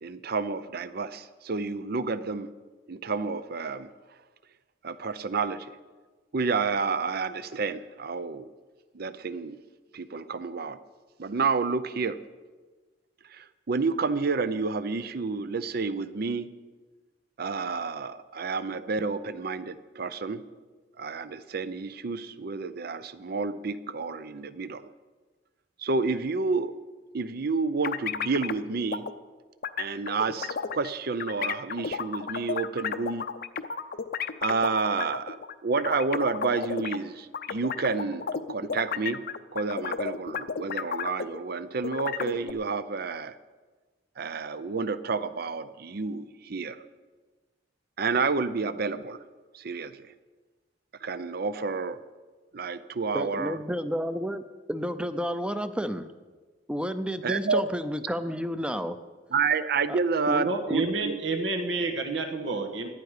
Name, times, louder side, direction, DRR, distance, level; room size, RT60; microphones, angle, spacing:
voice 1, 0.0-2.5 2.9-3.9 4.8-5.7 6.3-8.5 8.9-9.6 9.9-10.8 11.2-12.2 13.3-16.5 17.4-20.4 21.0-24.8 25.8-26.7 27.1-29.0 29.8-33.3 34.4-39.2 39.5-43.3 44.2-46.8 48.0-49.2 49.5-50.1 51.0-52.0 52.5-53.6 57.2-57.6 59.3-61.2, right 4 dB, 55° right, 14 dB, 0.6 m, -30 dB
sound 1, 27.8-28.6 28.9-29.1 29.6-30.9 31.2-37.0 37.3-41.5 41.8-42.5, left 6 dB, 55° left, 0.6 m, -32 dB
voice 2, 53.1-54.4 54.7-56.1 56.7-59.0 59.9-60.0 60.3-60.8, equal, 5° right, 11 dB, 0.6 m, -31 dB
voice 3, 60.4-62.9, right 3 dB, 75° right, 5 dB, 1.4 m, -29 dB
17.5 x 11.5 x 5.0 m, 1.3 s
head